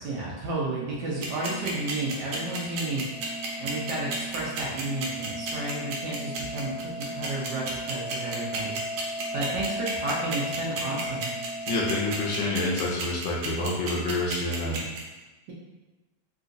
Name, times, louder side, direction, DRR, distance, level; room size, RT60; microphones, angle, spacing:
voice 1, 0.0-3.0 3.6-8.8 9.3-11.3, right 2 dB, 70° right, -5 dB, 1.1 m, -32 dB
sound 1, 0.6-12.6, equal, 15° right, 1.1 m, -38 dB
sound 2, 1.2-15.0, right 4 dB, 90° right, 1.5 m, -32 dB
voice 2, 11.7-14.8, left 2 dB, 70° left, -3 dB, 1.2 m, -28 dB
3.7 x 2.4 x 2.6 m, 1.1 s
omnidirectional pair, 2.1 m